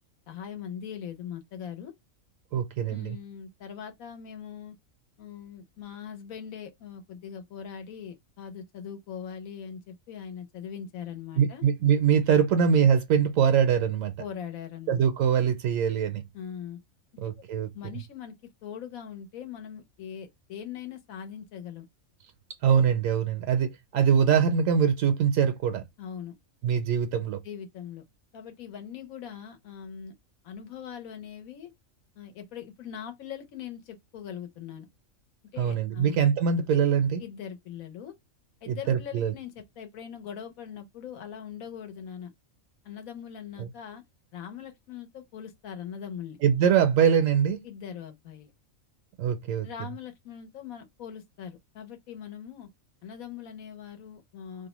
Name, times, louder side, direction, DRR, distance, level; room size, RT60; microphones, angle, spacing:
voice 1, 0.3-1.9 2.9-4.8 5.2-11.6 14.2-15.0 16.3-16.8 17.7-18.3 18.6-21.9 26.0-26.4 27.4-28.0 28.3-30.1 30.4-31.7 32.2-34.9 35.5-36.2 37.2-38.1 38.6-42.3 42.8-44.0 44.3-46.4 47.6-48.5 49.6-52.7 53.0-54.7, left 8 dB, 90° left, 1.2 m, -41 dB
voice 2, 2.5-3.2 11.4-14.1 14.9-16.2 17.2-17.7 22.6-25.8 26.6-27.4 35.6-37.2 38.7-39.3 43.6-43.7 46.4-47.6 49.2-49.7, right 7 dB, 75° right, 0.9 m, -23 dB
2.7 x 2.1 x 2.9 m
omnidirectional pair, 1.4 m